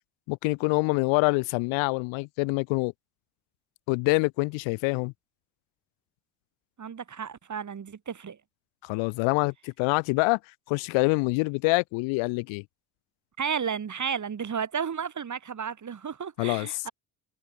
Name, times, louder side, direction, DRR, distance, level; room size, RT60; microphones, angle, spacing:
voice 1, 0.3-2.9 3.9-5.1 8.8-10.4 10.7-12.6 16.4-16.8, left 29 dB, 80° left, 1.0 m, -26 dB
voice 2, 6.8-8.4 13.4-16.9, right 7 dB, 40° right, 3.2 m, -33 dB
supercardioid pair, 70°, 46 cm